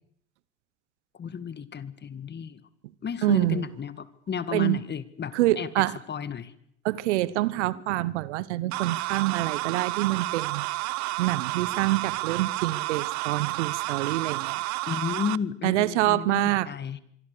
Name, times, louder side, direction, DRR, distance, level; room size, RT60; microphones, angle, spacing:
voice 1, 1.2-2.6 3.0-6.5 14.9-17.0, left 7 dB, 30° left, 2.1 m, -33 dB
voice 2, 3.2-3.7 4.5-4.8 5.3-6.0 6.8-10.7 11.2-14.6 15.6-16.7, right 16 dB, 70° right, 1.3 m, -26 dB
sound 1, 8.7-15.4, right 20 dB, 50° right, 0.9 m, -31 dB
26.0 x 23.5 x 6.9 m
hypercardioid pair, 80°, 36 cm